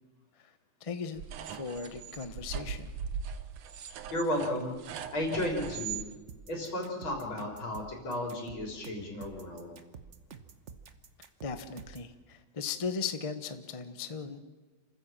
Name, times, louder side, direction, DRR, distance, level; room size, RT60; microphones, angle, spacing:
voice 1, 0.8-1.2 1.5-2.9 11.4-14.4, left 5 dB, 35° left, 9 dB, 0.5 m, -37 dB
sound 1, 1.2-6.1, right 7 dB, 80° right, 1.9 m, -39 dB
voice 2, 4.1-4.8 5.1-6.0 6.5-9.7, left 1 dB, 65° left, 1 dB, 4.4 m, -34 dB
sound 2, 6.3-12.1, right 6 dB, 45° right, 1.1 m, -49 dB
27.5 x 15.0 x 7.5 m, 1.3 s
omnidirectional pair, 2.4 m